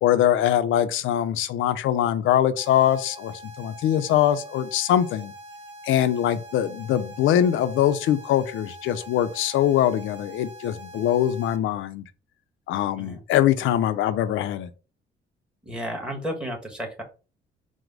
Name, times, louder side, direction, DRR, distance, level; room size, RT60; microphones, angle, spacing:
voice 1, 0.0-5.3 5.8-12.0 12.7-14.7, left 11 dB, 80° left, 12 dB, 0.5 m, -22 dB
sound 1, 2.6-11.6, right 1 dB, 70° right, 0.9 m, -44 dB
voice 2, 15.6-17.0, equal, 5° right, 3 dB, 1.3 m, -32 dB
4.7 x 2.1 x 3.8 m, 0.34 s
cardioid pair, 90°, 20 cm